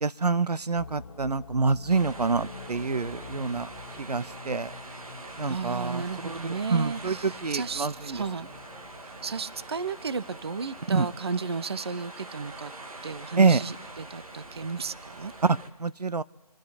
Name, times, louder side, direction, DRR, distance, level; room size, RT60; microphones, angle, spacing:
voice 1, 0.0-3.7 4.0-4.7 5.4-6.4 6.7-8.2 10.9-11.1 13.4-13.6 15.4-16.2, right 4 dB, 90° right, 17 dB, 0.7 m, -26 dB
sound 1, 0.7-10.6, left 5 dB, 50° left, 0.9 m, -47 dB
sound 2, 1.9-15.7, right 2 dB, 65° right, 1.9 m, -44 dB
voice 2, 5.4-8.5 9.2-12.7 13.0-15.3, right 5 dB, 40° right, 17 dB, 0.5 m, -34 dB
26.5 x 11.0 x 4.2 m, 1.1 s
figure-of-eight pair, 160°, 20 cm